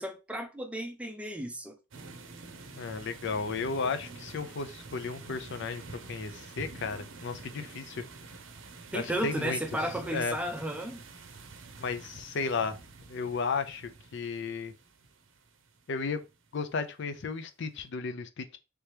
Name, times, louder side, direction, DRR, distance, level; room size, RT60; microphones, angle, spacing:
voice 1, 0.0-1.8 8.9-11.0, right 1 dB, 5° right, 0.5 m, -34 dB
sound 1, 1.9-16.5, right 3 dB, 70° right, 0.6 m, -48 dB
voice 2, 2.8-5.8 6.1-8.0 8.9-9.6 10.1-10.4 11.8-12.8 13.1-14.7 15.9-16.2 16.5-18.6, left 4 dB, 60° left, 0.5 m, -34 dB
3.3 x 2.9 x 3.2 m
head